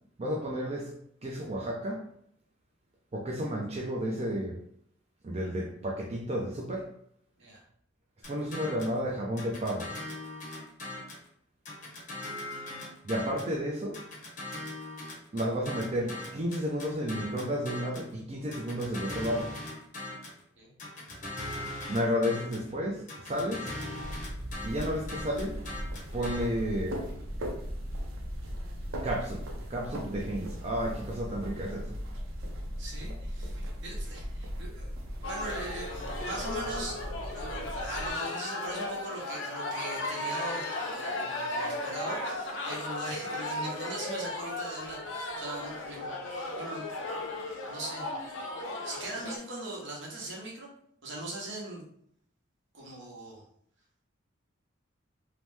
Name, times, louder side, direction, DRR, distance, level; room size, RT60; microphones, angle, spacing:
voice 1, 0.2-0.9 1.2-2.0 3.1-4.6 5.2-6.9 8.3-9.9 13.0-14.0 15.3-19.5 21.9-23.7 24.6-25.6 26.1-27.0 29.0-29.4 29.7-32.0, equal, 30° right, 0 dB, 0.4 m, -32 dB
sound 1, 8.2-9.0 9.4-11.3 11.6-13.5 13.9-18.1 18.5-20.4 20.8-22.7 23.1-26.4, left 2 dB, 40° left, 0.7 m, -40 dB
sound 2, 24.0-38.1, equal, 85° right, 0.6 m, -38 dB
voice 2, 32.8-37.1 37.3-46.9 47.7-48.1 48.8-50.7 51.0-51.8 52.7-53.4, right 2 dB, 70° right, -3 dB, 0.9 m, -40 dB
sound 3, 35.2-49.4, left 2 dB, 75° left, 0.5 m, -36 dB
2.8 x 2.0 x 3.3 m, 0.69 s
head